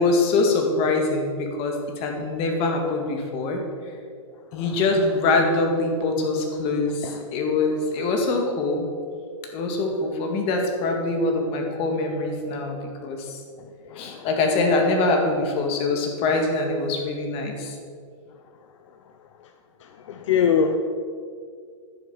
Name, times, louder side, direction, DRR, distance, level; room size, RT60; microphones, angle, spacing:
voice 1, 0.0-3.6 4.5-8.9 9.5-12.8 13.0-13.4 14.0-17.8, left 3 dB, 35° left, 2 dB, 2.1 m, -24 dB
voice 2, 13.6-14.3 19.8-20.8, left 7 dB, 65° left, 6 dB, 0.8 m, -25 dB
10.5 x 6.9 x 7.1 m, 2.2 s
hypercardioid pair, 140°, 17 cm